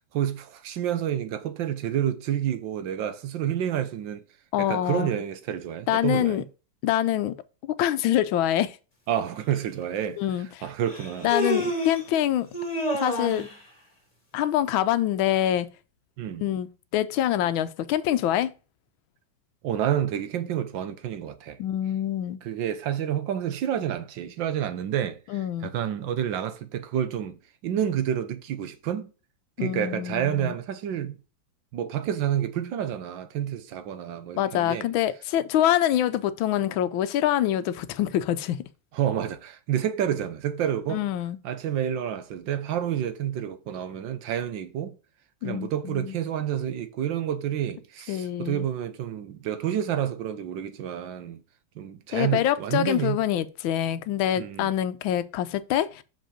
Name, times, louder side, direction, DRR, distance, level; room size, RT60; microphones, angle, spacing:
voice 1, 0.1-4.2 4.6-6.4 9.1-10.2 10.6-11.3 16.2-16.4 19.6-21.6 22.4-29.1 29.6-31.2 31.7-34.9 38.9-41.0 41.4-45.0 45.4-51.4 51.8-53.2 54.3-54.7, right 10 dB, 75° right, 1.5 m, -29 dB
voice 2, 4.5-5.1 5.9-6.4 6.8-7.4 7.8-8.8 10.2-10.5 11.2-12.5 12.9-13.5 14.3-15.7 16.4-18.5 21.6-22.4 25.3-25.7 29.6-30.6 34.4-38.6 40.9-41.4 45.4-46.2 48.1-48.7 52.1-56.0, left 12 dB, 85° left, 1.4 m, -25 dB
Human voice, 9.5-9.6 10.9-12.1 12.5-13.5, equal, 20° left, 2.2 m, -28 dB
6.1 x 5.1 x 5.0 m
omnidirectional pair, 2.1 m